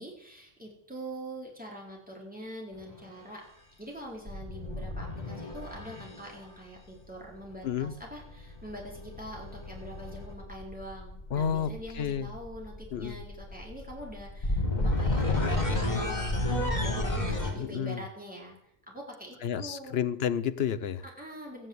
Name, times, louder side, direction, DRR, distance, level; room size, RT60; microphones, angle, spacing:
voice 1, 0.0-3.4 3.8-18.6 18.9-20.0 21.2-21.7, equal, 5° right, -2 dB, 4.4 m, -44 dB
sound 1, 2.8-3.0 4.3-6.4 8.2-17.5, left 2 dB, 35° left, 3.0 m, -32 dB
voice 2, 7.6-7.9 11.3-12.3 12.9-13.2 17.5-18.0 19.4-21.1, left 8 dB, 60° left, 14 dB, 1.0 m, -31 dB
14.5 x 9.2 x 8.1 m, 0.74 s
omnidirectional pair, 1.3 m